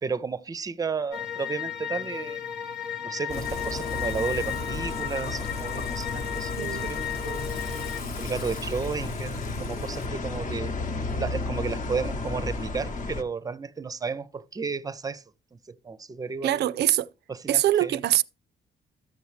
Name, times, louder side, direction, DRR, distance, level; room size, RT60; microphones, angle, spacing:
voice 1, 0.0-2.5 3.0-7.6 8.2-10.8 11.2-15.2 15.5-16.7 17.3-18.0, right 5 dB, 20° right, 0.5 m, -33 dB
sound 1, 1.1-8.0, left 9 dB, 85° left, 1.0 m, -34 dB
Water / Water tap faucet / Sink (filling or washing), 3.3-10.1, left 6 dB, 65° left, 1.2 m, -46 dB
sound 2, 3.3-13.2, left 3 dB, 50° left, 0.9 m, -33 dB
voice 2, 6.6-6.9 16.4-17.1 17.5-18.2, right 13 dB, 75° right, 0.4 m, -23 dB
13.0 x 7.0 x 3.1 m
cardioid pair, 100°, 17 cm